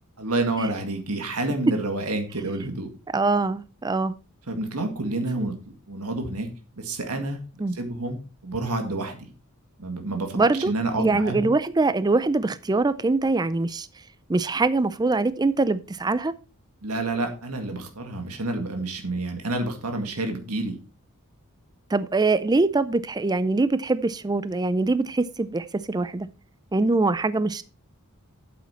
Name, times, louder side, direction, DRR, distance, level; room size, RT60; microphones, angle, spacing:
voice 1, 0.2-2.9 4.5-5.5 5.9-6.5 6.8-7.4 7.7-9.3 9.8-11.5 16.8-20.8, right 2 dB, 80° right, 2.0 m, -29 dB
voice 2, 3.1-4.1 7.6-7.8 10.4-10.7 11.0-13.9 14.3-16.3 21.9-26.3 26.7-27.6, right 3 dB, 20° right, 0.4 m, -23 dB
8.4 x 8.3 x 4.3 m
head